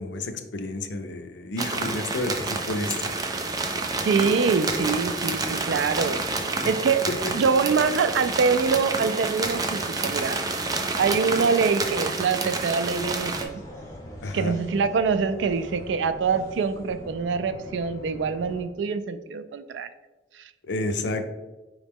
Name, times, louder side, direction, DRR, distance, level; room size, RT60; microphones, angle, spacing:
voice 1, 0.0-3.2 14.2-14.6 20.7-21.3, left 2 dB, 85° left, 7 dB, 0.5 m, -30 dB
sound 1, 1.6-13.4, right 3 dB, 20° right, 0.4 m, -29 dB
voice 2, 4.0-6.2 6.5-7.1 7.3-10.4 11.0-13.6 14.3-19.9, right 5 dB, 90° right, 12 dB, 0.3 m, -24 dB
sound 2, 12.8-18.6, left 1 dB, 15° left, 0.8 m, -43 dB
4.9 x 3.1 x 3.5 m, 1.2 s
head